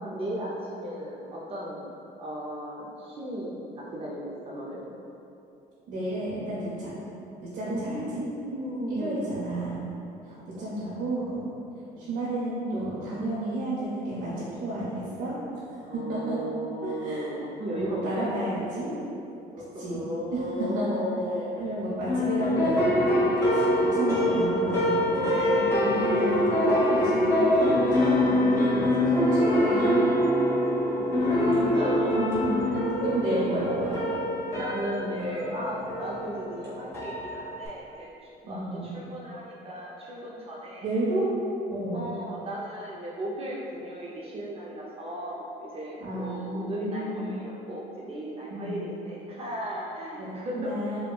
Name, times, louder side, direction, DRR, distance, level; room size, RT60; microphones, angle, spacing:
voice 1, 0.0-1.9 2.2-4.9 7.7-9.3 10.2-10.8 11.9-12.1 15.8-18.4 19.5-21.5 30.9-33.8 34.6-40.9 41.9-51.0, equal, 35° right, -5 dB, 0.5 m, -36 dB
voice 2, 5.9-7.0 7.4-8.2 8.9-9.8 10.2-11.5 12.0-15.4 15.7-16.4 16.8-17.4 17.7-18.5 18.7-18.9 19.8-21.0 21.6-30.0 32.1-34.1 38.4-38.9 40.8-41.3 41.7-42.1 46.0-47.4 48.5-48.8 50.2-51.0, right 1 dB, 70° right, -8 dB, 0.7 m, -32 dB
sound 1, 22.1-37.7, left 1 dB, 15° left, 1.0 m, -24 dB
5.3 x 2.2 x 2.3 m, 2.8 s
cardioid pair, 110°, 17 cm